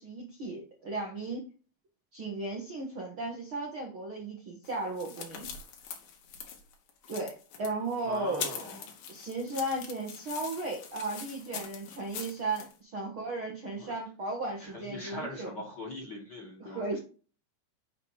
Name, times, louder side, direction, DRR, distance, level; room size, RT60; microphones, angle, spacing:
voice 1, 0.0-1.4 2.1-5.5 7.1-8.6 9.1-15.5 16.6-17.0, right 2 dB, 90° right, -1 dB, 1.1 m, -35 dB
sound 1, 4.6-12.7, left 7 dB, 65° left, 2.9 m, -43 dB
voice 2, 8.0-8.9 13.8-13.9 14.6-16.8, left 1 dB, 35° left, 0 dB, 1.7 m, -41 dB
8.0 x 5.0 x 4.9 m, 0.36 s
omnidirectional pair, 5.0 m